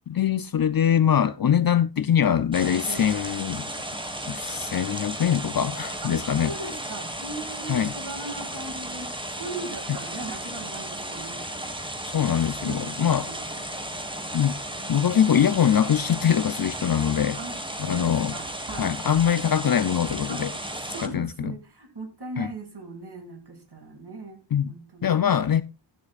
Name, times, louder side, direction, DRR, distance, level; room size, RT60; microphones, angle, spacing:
voice 1, 0.1-3.7 4.3-6.5 7.7-7.9 12.1-13.3 14.3-14.6 14.9-17.4 17.8-18.4 18.8-20.5 21.0-21.5 22.4-22.5 24.5-24.7 25.0-25.6, left 9 dB, 50° left, 0.5 m, -23 dB
sound 1, 2.5-21.1, right 1 dB, 10° right, 1.5 m, -34 dB
voice 2, 6.4-11.5 12.6-13.6 17.4-17.6 17.8-19.0 20.3-20.5 20.9-25.1, right 3 dB, 60° right, 2.5 m, -39 dB
13.0 x 10.0 x 2.4 m
wide cardioid pair, 105°, 45 cm